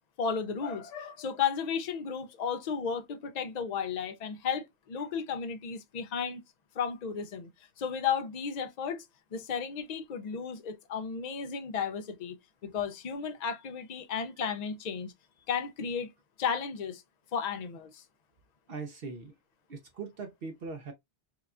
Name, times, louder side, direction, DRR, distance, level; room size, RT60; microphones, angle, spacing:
voice 1, 0.2-6.4 6.8-7.5 7.8-9.0 9.3-12.4 12.6-15.1 15.5-16.1 16.4-17.0 17.3-18.0, left 6 dB, 50° left, 0.5 m, -33 dB
voice 2, 18.7-19.3 19.7-20.9, right 4 dB, 60° right, 0.8 m, -40 dB
4.7 x 2.3 x 2.5 m
omnidirectional pair, 1.2 m